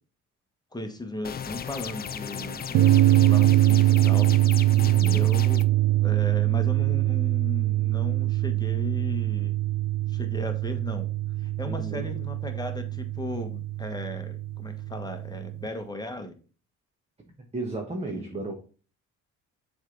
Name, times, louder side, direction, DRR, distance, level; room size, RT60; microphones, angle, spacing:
voice 1, 0.7-2.9 3.2-4.3 5.0-5.7 6.0-9.5 10.1-11.1 11.4-16.3 18.1-18.4, left 2 dB, 15° left, 1.3 m, -36 dB
sound 1, 1.2-5.6, left 8 dB, 30° left, 0.5 m, -36 dB
sound 2, 2.7-15.7, right 15 dB, 90° right, 0.6 m, -23 dB
voice 2, 4.7-5.3 11.7-12.1 17.5-18.5, right 2 dB, 20° right, 1.3 m, -34 dB
7.1 x 3.6 x 3.9 m
cardioid pair, 90°, 30 cm